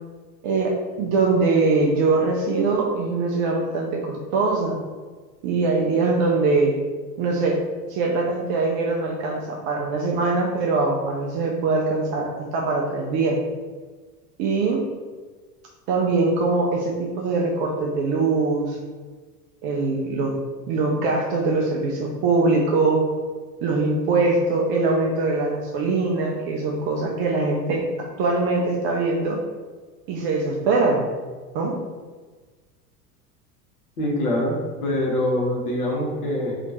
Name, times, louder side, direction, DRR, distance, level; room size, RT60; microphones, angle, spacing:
voice 1, 0.4-4.8 5.4-6.7 7.2-7.6 7.9-13.4 14.4-14.8 15.9-18.8 19.6-20.3 20.7-23.1 23.6-27.8 28.2-29.4 30.1-31.1 31.5-31.8, right 3 dB, 30° right, -1 dB, 0.4 m, -22 dB
voice 2, 34.0-36.7, left 1 dB, 65° left, -3 dB, 1.3 m, -24 dB
2.9 x 2.4 x 4.1 m, 1.4 s
figure-of-eight pair, 80°, 47 cm